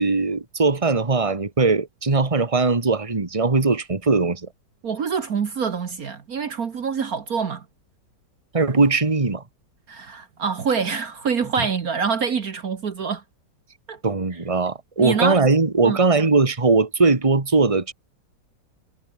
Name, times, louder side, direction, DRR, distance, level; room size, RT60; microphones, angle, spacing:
voice 1, 0.0-4.5 8.5-9.4 11.6-11.7 14.0-17.9, right 3 dB, 20° right, 1.9 m, -20 dB
voice 2, 4.8-7.6 9.9-13.2 13.9-14.0 15.0-15.4 15.9-16.0, right 6 dB, 55° right, 1.8 m, -26 dB
omnidirectional pair, 1.9 m